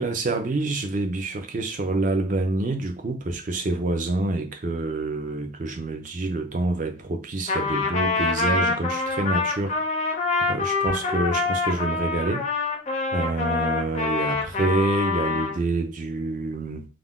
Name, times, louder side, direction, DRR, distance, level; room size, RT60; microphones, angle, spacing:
voice 1, 0.0-9.8 10.5-12.7 13.1-16.8, right 2 dB, 40° right, 0.4 m, -27 dB
Trumpet, 7.5-15.6, left 4 dB, 35° left, 0.5 m, -25 dB
2.4 x 2.2 x 3.5 m
head